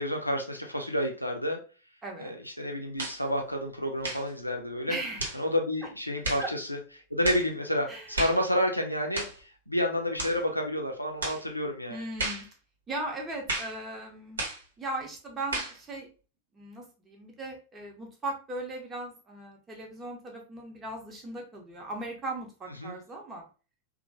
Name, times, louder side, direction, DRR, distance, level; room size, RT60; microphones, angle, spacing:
voice 1, 0.0-1.6 2.2-5.0 5.3-6.8 7.1-12.0 22.8-23.0, equal, 90° left, 3 dB, 0.5 m, -30 dB
voice 2, 2.0-2.3 4.9-5.2 6.4-6.5 7.9-8.1 11.9-12.5 12.9-14.4 14.8-16.1 16.5-23.5, right 2 dB, 20° right, 0 dB, 0.9 m, -38 dB
sound 1, 3.0-3.2 4.0-4.3 5.2-5.4 6.2-6.5 7.2-7.5 8.1-8.4 9.1-9.4 10.2-10.4 11.2-11.4 12.2-12.5 13.5-13.8 14.4-14.6 15.5-15.8, right 2 dB, 70° right, 0.9 m, -33 dB
2.9 x 2.1 x 2.7 m, 0.35 s
figure-of-eight pair, 90°, 0 cm